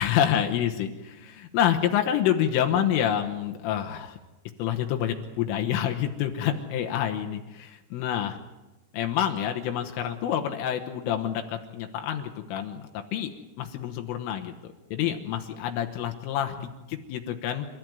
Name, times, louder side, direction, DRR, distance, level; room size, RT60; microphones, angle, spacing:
voice 1, 0.0-4.2 4.6-8.4 8.9-13.3 13.6-17.7, left 10 dB, 80° left, 5 dB, 3.7 m, -28 dB
28.5 x 14.0 x 9.4 m, 1.1 s
omnidirectional pair, 6.0 m